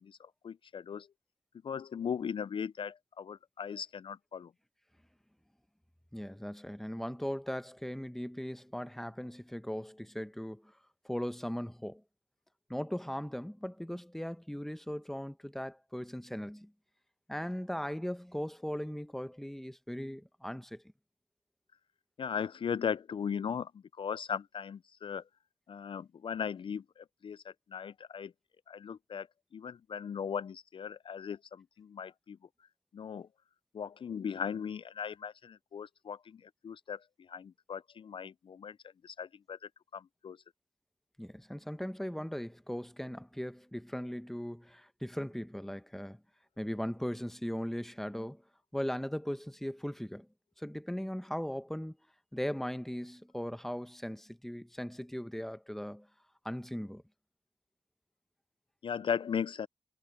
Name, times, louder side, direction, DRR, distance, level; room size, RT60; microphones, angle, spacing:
voice 1, 0.0-1.1 1.6-4.5 22.2-23.7 24.0-25.2 25.7-28.3 28.7-29.3 29.5-32.4 32.9-33.3 33.7-38.8 39.0-39.6 39.9-40.4 58.8-59.7, left 7 dB, 65° left, 0.4 m, -38 dB
voice 2, 6.1-10.7 11.0-12.0 12.7-16.7 17.3-20.8 41.2-46.2 46.6-48.4 48.7-50.3 50.6-52.0 52.3-56.1 56.4-57.0, equal, 5° left, 1.0 m, -38 dB
cardioid pair, 45°, 9 cm